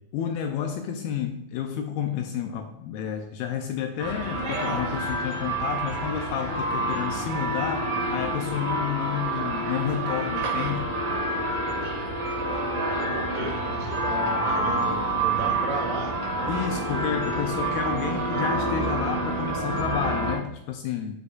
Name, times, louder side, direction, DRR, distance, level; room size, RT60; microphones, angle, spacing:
voice 1, 0.1-10.9 16.5-21.2, left 8 dB, 80° left, 5 dB, 2.2 m, -30 dB
sound 1, 4.0-20.4, right 1 dB, 50° right, 2.3 m, -28 dB
voice 2, 13.0-16.1, right 4 dB, 80° right, 1 dB, 3.0 m, -34 dB
9.5 x 4.4 x 2.4 m, 0.84 s
omnidirectional pair, 4.6 m